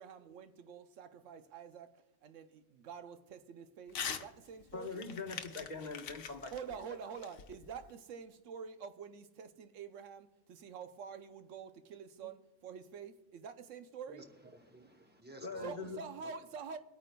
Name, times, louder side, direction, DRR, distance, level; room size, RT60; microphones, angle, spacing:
voice 1, 0.0-1.9 2.2-5.0 6.5-14.2 15.6-16.8, right 6 dB, 85° right, 1.0 m, -47 dB
Crumpling crinkling / Tearing, 3.9-4.3 4.6-7.9, left 7 dB, 80° left, 1.0 m, -43 dB
voice 2, 4.7-6.8 15.4-16.0, left 4 dB, 40° left, 1.2 m, -43 dB
voice 3, 14.1-16.0 16.2-16.3, right 1 dB, 10° right, 0.6 m, -55 dB
23.5 x 9.0 x 2.2 m
omnidirectional pair, 1.3 m